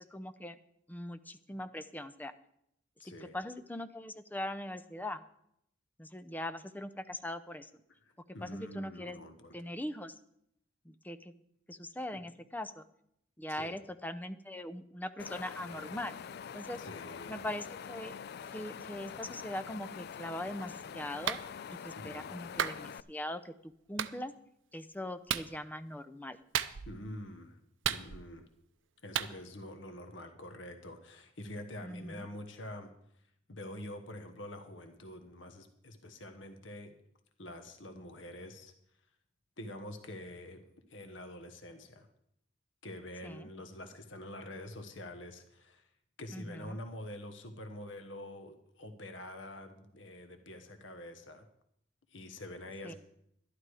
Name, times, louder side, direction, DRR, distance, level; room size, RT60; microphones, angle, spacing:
voice 1, 0.1-0.6 0.9-2.3 3.3-5.2 6.0-7.7 8.4-9.2 9.5-10.1 10.8-11.3 11.7-12.8 13.4-16.2 16.5-16.8 17.3-18.2 18.5-21.4 21.7-24.3 24.7-26.4 31.8-32.2 43.2-43.5 46.3-46.8 52.8-52.9, left 1 dB, 10° left, 11 dB, 0.6 m, -41 dB
voice 2, 3.0-3.4 8.0-9.6 12.1-12.2 13.5-13.7 16.8-17.5 22.0-22.4 26.9-27.6 27.9-28.5 29.0-32.9 33.5-36.9 37.4-38.7 39.6-40.6 40.9-42.1 42.8-45.9 46.2-51.5 52.1-52.9, left 1 dB, 85° left, 7 dB, 1.3 m, -46 dB
Wind, 15.2-23.0, left 7 dB, 60° left, 0.4 m, -45 dB
Clapping, 21.3-21.5 22.6-22.8 24.0-24.1 25.3-25.5 26.5-27.0 27.8-28.4 29.2-29.3, right 9 dB, 85° right, 0.6 m, -33 dB
11.5 x 11.5 x 4.9 m, 0.74 s
head